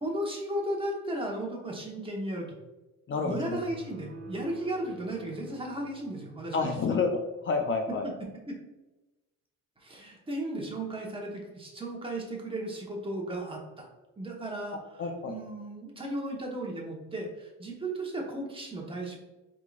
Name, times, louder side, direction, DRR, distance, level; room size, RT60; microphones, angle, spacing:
voice 1, 0.0-2.5 3.2-6.8 8.5-8.6 9.8-13.9 14.2-14.8 15.2-19.2, right 1 dB, 15° right, -1 dB, 1.2 m, -35 dB
voice 2, 3.1-3.6 6.5-8.1 15.0-15.3, left 4 dB, 40° left, 3 dB, 0.5 m, -29 dB
sound 1, 3.6-7.1, right 2 dB, 60° right, 1.1 m, -47 dB
4.8 x 3.7 x 2.4 m, 1.1 s
cardioid pair, 90°, 31 cm